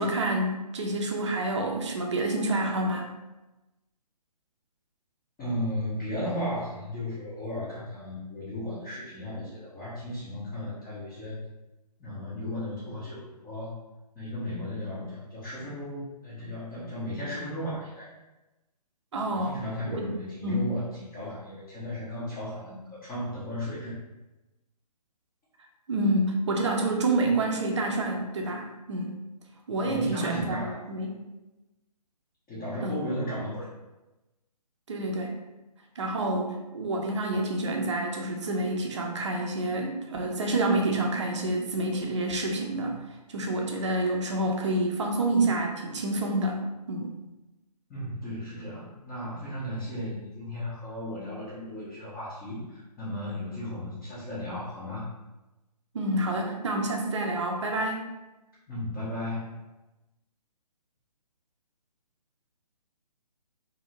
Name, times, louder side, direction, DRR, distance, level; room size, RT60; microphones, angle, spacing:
voice 1, 0.0-3.1 19.1-19.6 19.9-20.2 20.4-20.7 25.9-29.1 29.7-31.2 32.8-32.9 34.9-35.4 36.0-43.0 43.3-46.6 46.9-47.1 55.9-58.1, right 2 dB, 45° right, 1 dB, 0.6 m, -28 dB
voice 2, 5.4-11.4 12.0-13.8 14.2-18.1 19.3-24.0 29.8-30.8 32.5-33.7 47.9-55.1 58.7-59.6, left 1 dB, 10° left, -12 dB, 0.5 m, -35 dB
2.6 x 2.6 x 2.9 m, 1.0 s
figure-of-eight pair, 140°, 21 cm